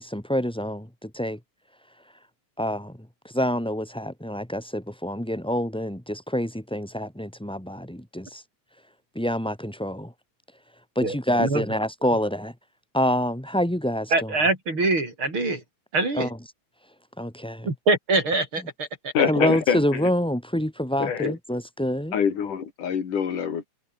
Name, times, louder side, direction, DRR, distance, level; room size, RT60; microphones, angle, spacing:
voice 1, 0.0-1.4 2.6-2.9 3.2-8.4 9.2-10.1 11.0-12.5 12.9-14.3 16.2-16.3 17.2-17.7 19.3-22.1, equal, ahead, 2.0 m, -27 dB
voice 2, 11.0-11.6 14.1-15.6 15.9-16.3 17.6-19.1 21.2-21.3, right 3 dB, 40° right, 6.5 m, -24 dB
voice 3, 19.1-20.1 21.0-21.3 22.1-23.7, left 7 dB, 80° left, 4.3 m, -25 dB
omnidirectional pair, 3.6 m